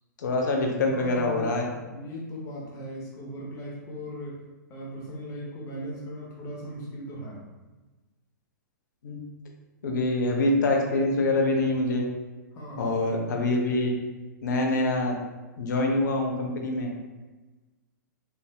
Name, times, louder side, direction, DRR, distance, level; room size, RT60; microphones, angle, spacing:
voice 1, 0.2-1.7 9.0-9.2 9.8-12.0 12.8-13.9 14.4-15.1 15.6-16.9, left 2 dB, 70° left, 1 dB, 0.6 m, -25 dB
voice 2, 0.9-1.6 1.8-4.4 4.7-7.4 12.5-13.0, equal, 30° left, -3 dB, 0.9 m, -38 dB
3.3 x 2.6 x 2.2 m, 1.2 s
hypercardioid pair, 115°, 10 cm